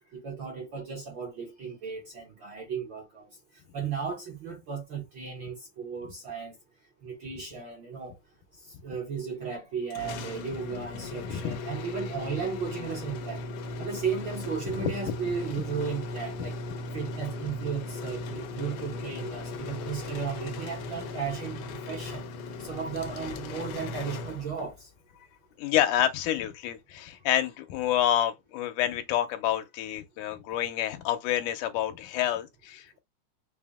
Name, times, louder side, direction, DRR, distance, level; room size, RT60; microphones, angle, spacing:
voice 1, 0.1-3.3 3.7-6.5 7.0-8.1 8.8-13.5 13.8-16.6 16.9-22.2 22.6-24.9, right 6 dB, 70° right, 1.1 m, -35 dB
sound 1, 9.9-24.8, left 3 dB, 70° left, 1.5 m, -37 dB
voice 2, 11.2-11.6 14.7-15.1 25.6-33.0, left 11 dB, 90° left, 2.2 m, -28 dB
5.4 x 2.1 x 3.5 m
omnidirectional pair, 3.5 m